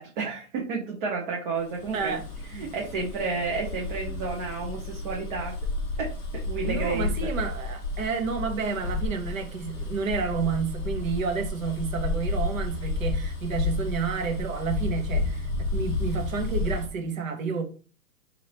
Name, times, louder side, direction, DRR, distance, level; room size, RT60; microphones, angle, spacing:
voice 1, 0.0-2.1 2.6-5.5 6.0-6.1 6.4-7.3, right 4 dB, 35° right, 0.9 m, -31 dB
Bus, 1.7-16.9, left 3 dB, 10° left, 0.8 m, -31 dB
voice 2, 1.9-2.2 2.5-2.7 6.6-17.6, right 5 dB, 60° right, 1.2 m, -30 dB
3.3 x 2.8 x 4.1 m
hypercardioid pair, 140°, 45 cm